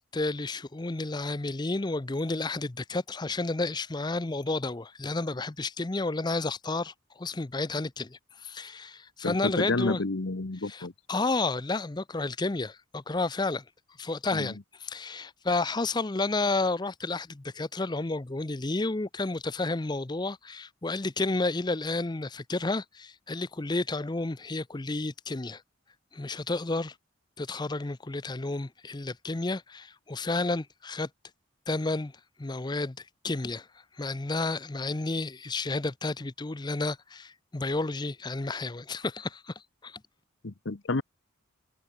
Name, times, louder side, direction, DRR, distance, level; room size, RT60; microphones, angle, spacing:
voice 1, 0.0-10.0 10.6-13.6 14.0-25.6 26.1-26.9 27.4-31.1 31.7-32.1 32.4-33.0 33.2-33.7 34.0-39.5 39.8-40.0, left 3 dB, 20° left, 0.6 m, -31 dB
voice 2, 9.2-10.9 14.3-14.5 40.4-41.0, left 3 dB, 60° left, 1.0 m, -30 dB
head